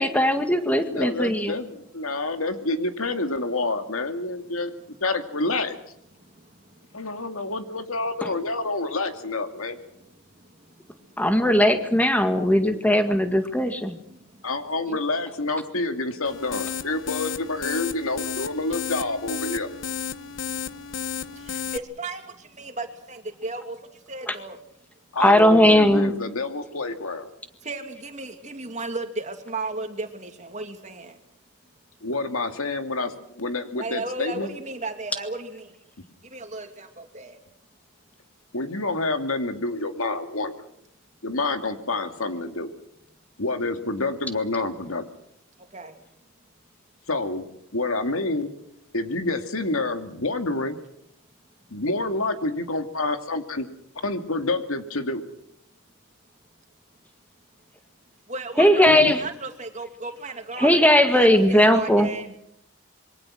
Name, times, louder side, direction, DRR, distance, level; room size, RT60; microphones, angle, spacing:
voice 1, 0.0-1.6 8.2-8.3 11.2-14.0 24.3-24.4 25.2-26.1 58.6-59.2 60.6-62.1, left 1 dB, 5° left, 7 dB, 1.8 m, -18 dB
voice 2, 0.9-4.7 5.0-5.8 6.9-9.8 12.9-13.1 14.4-19.7 25.1-27.3 32.0-34.5 38.5-40.5 41.2-42.7 43.4-45.1 47.1-47.4 47.7-48.5 48.9-50.8 51.7-53.7 54.0-55.2 58.9-59.1, left 2 dB, 90° left, 7 dB, 2.4 m, -28 dB
voice 3, 6.1-7.5 9.9-11.2 13.7-14.5 14.8-15.0 18.7-18.8 20.1-24.6 27.6-31.2 33.8-35.7 36.2-37.4 45.6-46.0 58.3-60.8 61.1-62.4, right 3 dB, 35° right, 6 dB, 2.6 m, -36 dB
sound 1, 16.2-21.8, left 7 dB, 60° left, 0.8 m, -33 dB
26.5 x 23.0 x 6.3 m, 0.72 s
head